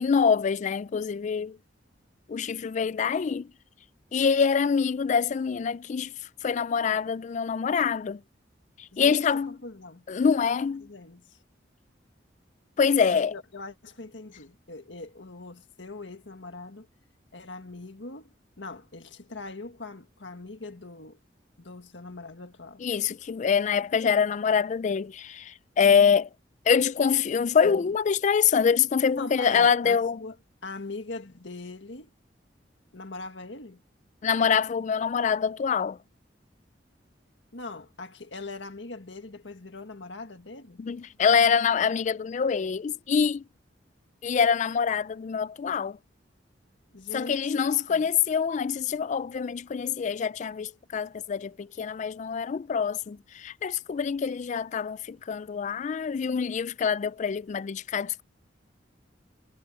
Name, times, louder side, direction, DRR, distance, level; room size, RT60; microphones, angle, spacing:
voice 1, 0.0-1.6 2.3-3.5 4.1-6.1 6.4-8.2 8.8-9.6 10.1-10.8 12.8-13.3 22.8-26.3 26.7-30.2 34.2-36.0 40.8-43.4 44.2-46.0 47.1-58.2, left 6 dB, 40° left, 0.3 m, -25 dB
voice 2, 8.9-10.0 10.4-11.4 13.1-16.9 17.3-18.3 18.6-21.2 21.6-22.8 29.2-30.4 30.6-32.1 32.9-33.8 37.5-40.8 46.9-47.5 47.9-48.1, left 3 dB, 85° left, 1.7 m, -41 dB
head